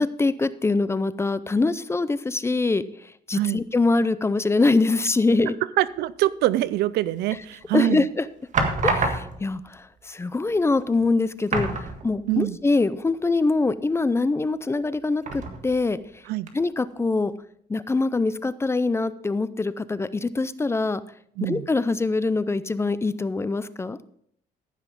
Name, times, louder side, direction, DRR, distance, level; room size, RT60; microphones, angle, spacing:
voice 1, 0.0-5.5 7.7-8.2 8.8-16.2 16.5-17.3 17.7-21.0 21.4-24.0, left 3 dB, 15° left, 0.5 m, -24 dB
voice 2, 5.8-8.1 12.3-12.6 16.3-16.5 21.4-21.7, right 15 dB, 75° right, 0.5 m, -24 dB
sound 1, 7.3-7.8 8.5-9.6 10.6-10.7 11.0-11.1 11.5-12.5 12.8-12.9 15.2-15.9 16.5-16.6, right 3 dB, 45° right, 1.7 m, -27 dB
14.5 x 5.9 x 5.3 m
cardioid pair, 110°, 17 cm